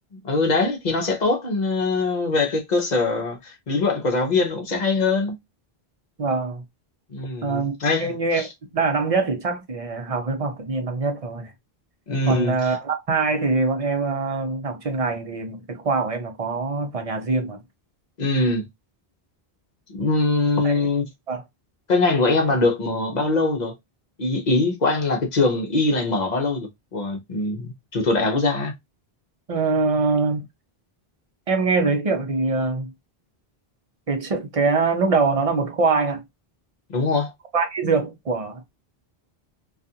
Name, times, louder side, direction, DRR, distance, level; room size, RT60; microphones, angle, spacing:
voice 1, 0.2-5.3 7.1-8.1 8.3-8.5 12.1-12.8 18.2-18.7 19.9-21.0 21.9-23.7 24.2-28.7 36.9-37.3, left 3 dB, 50° left, 0.7 m, -22 dB
voice 2, 6.2-6.6 7.4-7.7 8.0-8.5 8.7-11.5 12.3-17.6 20.6-20.8 21.3-21.4 29.5-30.5 31.5-32.9 34.1-36.2 37.5-38.7, right 4 dB, 40° right, 0.6 m, -23 dB
2.4 x 2.4 x 2.6 m
omnidirectional pair, 1.0 m